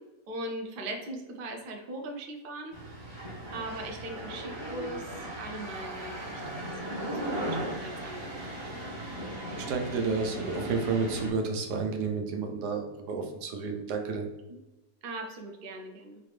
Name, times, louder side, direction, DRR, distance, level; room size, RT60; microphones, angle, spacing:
voice 1, 0.3-2.8 3.5-5.1 5.4-6.6 6.8-8.5 14.5-14.6 15.0-16.2, right 2 dB, 60° right, 2 dB, 0.5 m, -40 dB
sound 1, 2.7-11.3, right 1 dB, 20° right, 0.8 m, -37 dB
voice 2, 9.6-14.3, right 4 dB, 80° right, 4 dB, 1.3 m, -31 dB
4.3 x 2.7 x 3.2 m, 1.0 s
omnidirectional pair, 1.8 m